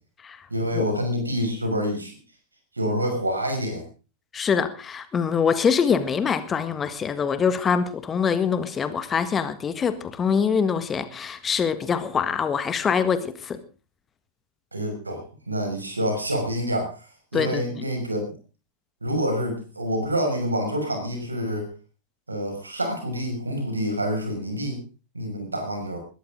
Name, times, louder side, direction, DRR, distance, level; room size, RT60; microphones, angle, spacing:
voice 1, 0.5-2.2 2.8-3.8 14.7-17.0 17.3-18.2 19.0-21.7 22.3-24.8 25.1-26.0, equal, 80° right, 4 dB, 6.0 m, -27 dB
voice 2, 4.3-13.6 17.3-17.8, left 6 dB, 20° left, 12 dB, 1.6 m, -24 dB
21.0 x 13.5 x 3.8 m, 0.34 s
figure-of-eight pair, 90°, 0 cm